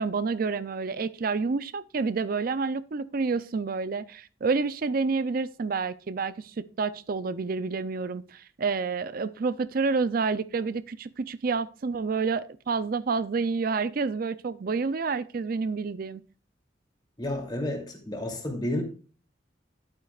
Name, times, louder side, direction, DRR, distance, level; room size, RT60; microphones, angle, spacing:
voice 1, 0.0-16.2, right 4 dB, 50° right, 0.4 m, -29 dB
voice 2, 17.2-18.8, left 1 dB, 25° left, 2.7 m, -31 dB
11.5 x 9.0 x 2.4 m
head